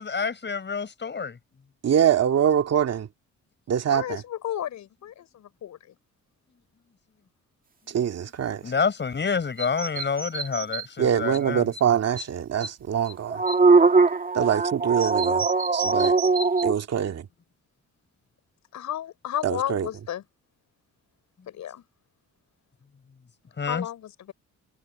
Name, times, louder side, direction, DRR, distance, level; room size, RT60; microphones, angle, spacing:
voice 1, 0.0-1.4 8.6-11.7 23.6-23.9, left 5 dB, 35° left, 6.3 m, -28 dB
voice 2, 1.8-3.1 3.7-4.2 7.9-8.6 11.0-13.4 14.3-15.5 15.7-16.1 16.6-17.3 19.4-19.9, right 9 dB, 55° right, 2.1 m, -24 dB
voice 3, 3.9-6.0 18.7-20.2 21.5-21.8 23.6-24.3, left 11 dB, 70° left, 6.1 m, -33 dB
sound 1, 9.6-10.8 11.3-11.4 11.7-11.8 12.2-12.3 12.6-12.7 13.1-16.7, right 4 dB, 30° right, 2.4 m, -21 dB
cardioid pair, 90°, 30 cm